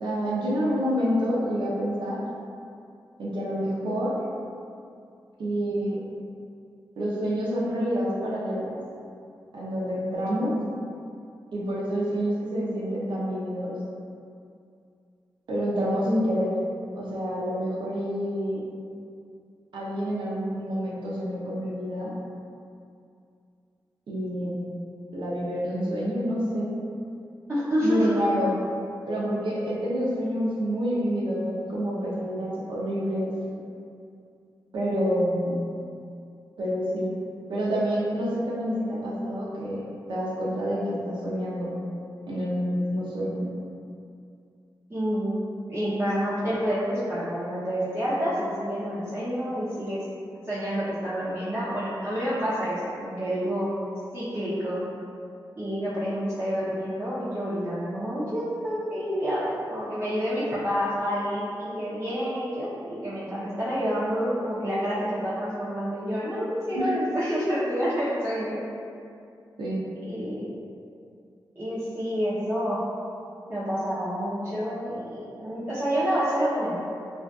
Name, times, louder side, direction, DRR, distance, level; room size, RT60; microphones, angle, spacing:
voice 1, 0.0-2.2 3.2-4.2 5.4-6.0 7.0-8.8 9.5-10.6 11.5-13.8 15.5-16.6 17.0-18.7 19.7-22.2 24.1-24.7 25.1-26.8 27.8-28.7 29.1-33.3 34.7-35.6 36.6-37.2 37.5-41.8 42.3-43.5 66.8-66.9 69.6-69.8, equal, 75° right, -6 dB, 0.6 m, -28 dB
voice 2, 27.5-28.2 44.9-45.4 45.7-50.0 50.4-53.7 54.1-54.8 55.6-68.6 70.1-70.4 71.6-72.8 73.5-76.8, equal, 25° right, -12 dB, 0.6 m, -28 dB
2.5 x 2.4 x 2.3 m, 2.4 s
cardioid pair, 55°, 8 cm